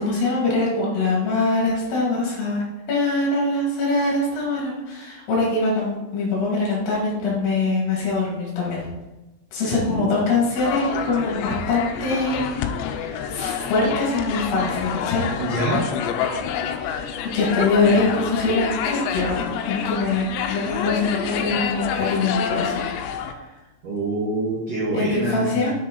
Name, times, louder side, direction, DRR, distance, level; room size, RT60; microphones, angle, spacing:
voice 1, 0.0-8.9 9.5-12.6 13.0-15.3 16.8-19.4 19.7-23.5 24.9-25.7, left 3 dB, 60° left, -5 dB, 3.9 m, -23 dB
voice 2, 9.6-10.2 15.4-15.8 23.8-25.6, right 2 dB, 55° right, -8 dB, 1.8 m, -26 dB
sound 1, 10.6-23.3, left 8 dB, 80° left, 2.7 m, -27 dB
7.4 x 7.3 x 3.9 m, 1.1 s
omnidirectional pair, 5.3 m